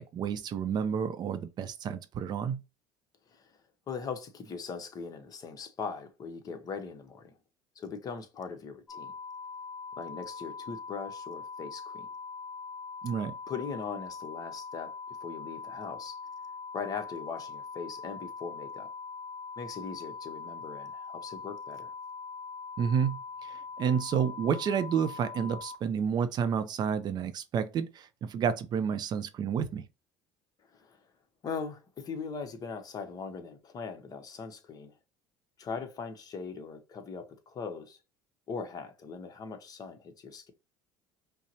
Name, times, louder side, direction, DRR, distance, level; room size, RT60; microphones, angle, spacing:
voice 1, 0.0-2.6 13.0-13.3 22.8-29.9, right 7 dB, 45° right, 0.5 m, -30 dB
voice 2, 3.3-3.6 3.9-7.3 7.8-9.2 10.0-12.1 13.5-16.2 16.7-18.9 19.6-21.9 30.7-31.0 31.4-34.9 35.6-38.0 38.5-40.5, left 5 dB, 35° left, 0.8 m, -40 dB
sound 1, 8.9-25.7, left 5 dB, 10° left, 2.0 m, -42 dB
5.4 x 2.0 x 2.8 m
supercardioid pair, 105°, 10 cm